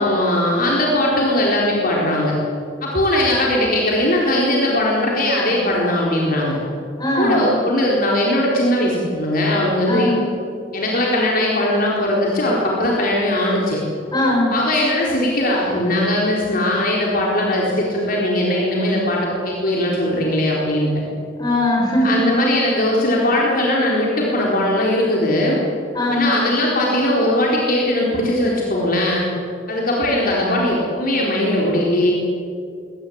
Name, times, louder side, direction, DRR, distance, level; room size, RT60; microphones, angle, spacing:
voice 1, 0.0-2.3 2.8-6.6 7.2-10.1 10.7-13.8 14.5-20.9 22.0-25.6 26.1-29.3 29.7-32.1, left 1 dB, 50° left, -3 dB, 4.2 m, -19 dB
voice 2, 7.0-7.4 9.9-10.2 14.1-14.5 21.4-22.3 25.9-26.3, left 1 dB, 20° left, -1 dB, 7.2 m, -19 dB
22.5 x 19.0 x 8.9 m, 2.4 s
head